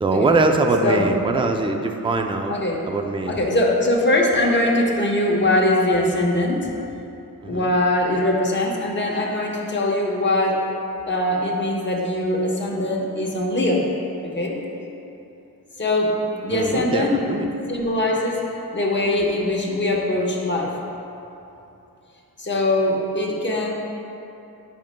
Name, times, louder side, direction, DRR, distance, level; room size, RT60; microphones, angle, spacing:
voice 1, 0.0-2.5 2.8-3.4 7.4-7.7 16.5-17.5, right 3 dB, 15° right, 4 dB, 0.4 m, -22 dB
voice 2, 2.5-2.8 3.3-6.7 7.5-10.6 11.1-13.9 14.3-14.6 15.8-17.2 17.7-18.4 18.7-20.7 22.4-23.7, left 1 dB, 30° left, -2 dB, 1.0 m, -21 dB
10.5 x 5.2 x 2.2 m, 2.8 s
wide cardioid pair, 55°, 40 cm